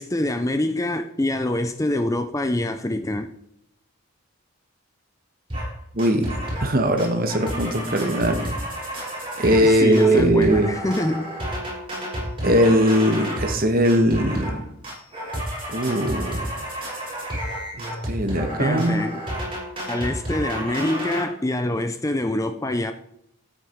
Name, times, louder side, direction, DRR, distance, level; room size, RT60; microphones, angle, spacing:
voice 1, 0.0-3.3 9.6-11.3 18.6-19.2 19.9-22.9, left 1 dB, 15° left, 0.5 m, -25 dB
sound 1, 5.5-5.7 6.0-6.7 7.0-13.6 13.9-14.6 14.8-21.2, equal, 25° right, 5.6 m, -30 dB
voice 2, 5.9-6.3 6.6-8.6 9.4-10.7 12.4-14.6 15.7-16.5 17.7-19.0, equal, 40° right, 1.5 m, -20 dB
13.5 x 8.2 x 4.6 m
head